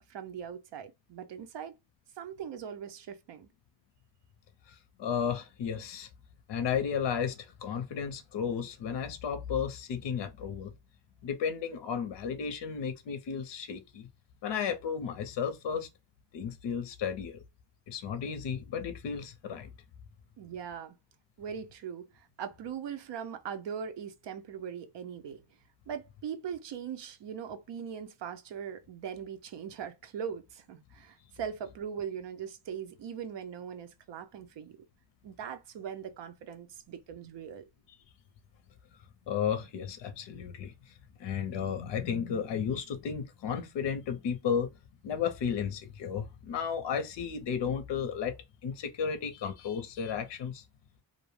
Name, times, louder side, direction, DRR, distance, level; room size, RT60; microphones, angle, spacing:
voice 1, 0.1-1.8 2.2-3.5 20.4-20.9 21.4-25.4 25.9-34.8 35.2-37.7, right 7 dB, 70° right, 0.6 m, -40 dB
voice 2, 4.7-6.1 6.5-10.7 11.2-14.1 14.4-15.9 16.3-17.4 17.9-19.7 39.3-40.9 41.2-44.7 45.0-48.4 48.6-50.6, left 7 dB, 70° left, 0.6 m, -33 dB
2.6 x 2.0 x 3.0 m
wide cardioid pair, 170°, 44 cm